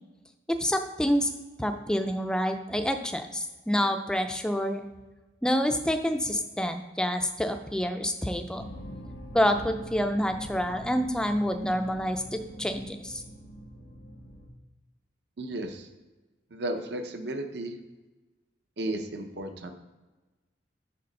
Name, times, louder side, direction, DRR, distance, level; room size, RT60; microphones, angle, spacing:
voice 1, 0.5-1.3 1.6-4.8 5.4-8.6 9.3-13.2, equal, 5° left, 6 dB, 0.4 m, -27 dB
sound 1, 8.6-14.5, equal, 75° left, 1.0 m, -44 dB
voice 2, 15.4-15.9 16.5-17.8 18.8-19.7, right 1 dB, 60° right, 6 dB, 0.7 m, -34 dB
6.8 x 4.0 x 5.3 m, 1.2 s
head